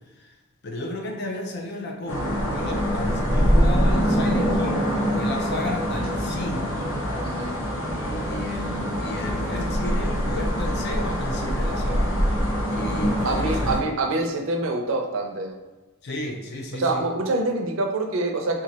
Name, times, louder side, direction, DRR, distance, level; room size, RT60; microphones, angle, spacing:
voice 1, 0.6-6.9 7.9-12.2 12.7-13.9 16.0-17.1, left 1 dB, 50° left, 2 dB, 0.5 m, -33 dB
sound 1, 2.1-13.8, equal, 75° left, 0.9 m, -24 dB
voice 2, 7.2-7.6 13.2-15.6 16.7-18.6, right 2 dB, 70° right, 3 dB, 0.5 m, -26 dB
3.0 x 2.3 x 4.0 m, 1.2 s
head